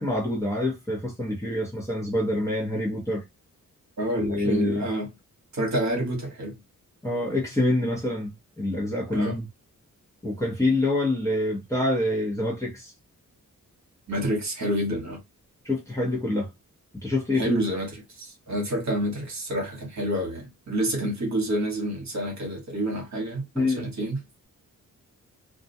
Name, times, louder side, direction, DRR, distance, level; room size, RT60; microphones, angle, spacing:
voice 1, 0.0-3.2 4.2-4.8 7.0-9.5 10.2-12.9 15.6-16.5 17.0-17.5 23.5-23.9, left 2 dB, 10° left, 0.8 m, -26 dB
voice 2, 4.0-5.1 5.5-6.6 9.1-9.4 14.1-15.2 17.4-24.2, right 1 dB, 55° right, 1.0 m, -28 dB
2.3 x 2.2 x 2.6 m
wide cardioid pair, 160°, 33 cm